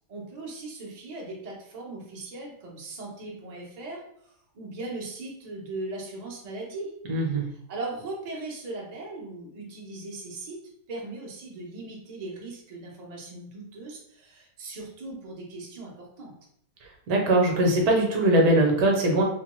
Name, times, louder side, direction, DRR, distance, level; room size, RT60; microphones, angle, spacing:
voice 1, 0.1-4.0 4.5-6.9 7.7-10.6 10.9-16.3, right 2 dB, 85° right, -2 dB, 0.3 m, -38 dB
voice 2, 7.1-7.5 17.1-19.2, right 1 dB, 65° right, 0 dB, 1.1 m, -21 dB
3.0 x 2.2 x 3.0 m, 0.71 s
omnidirectional pair, 1.9 m